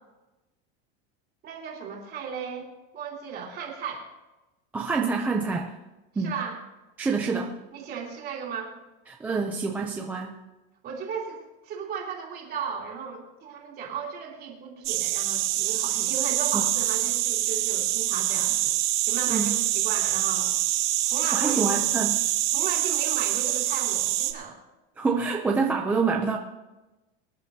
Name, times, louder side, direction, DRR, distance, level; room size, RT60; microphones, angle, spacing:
voice 1, 1.4-4.0 6.1-6.6 7.7-8.7 10.8-18.7 19.0-20.5 21.0-21.9 22.5-24.6, right 6 dB, 30° right, -1 dB, 3.0 m, -36 dB
voice 2, 4.7-5.7 6.2-6.3 7.0-7.6 9.1-10.4 16.5-16.7 19.3-19.6 21.3-22.2 25.0-26.4, right 4 dB, 5° right, 0 dB, 0.3 m, -27 dB
sound 1, 14.8-24.3, right 14 dB, 60° right, 1.2 m, -25 dB
24.5 x 10.5 x 2.7 m, 1.1 s
supercardioid pair, 170°, 33 cm